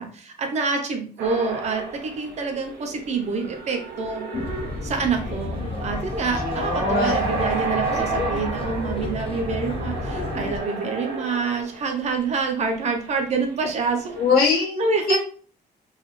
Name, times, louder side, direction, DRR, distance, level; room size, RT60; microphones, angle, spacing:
voice 1, 0.0-4.2 4.8-14.2 14.8-15.2, right 4 dB, 45° right, 4 dB, 0.6 m, -27 dB
sound 1, 1.2-12.2 12.9-13.1 13.6-14.4, right 3 dB, 80° right, 0.9 m, -32 dB
sound 2, 4.3-10.6, left 3 dB, 35° left, 0.5 m, -31 dB
voice 2, 6.3-7.2 14.1-15.2, left 4 dB, 65° left, -4 dB, 1.4 m, -22 dB
4.0 x 2.2 x 3.1 m, 0.42 s
cardioid pair, 170°, 16 cm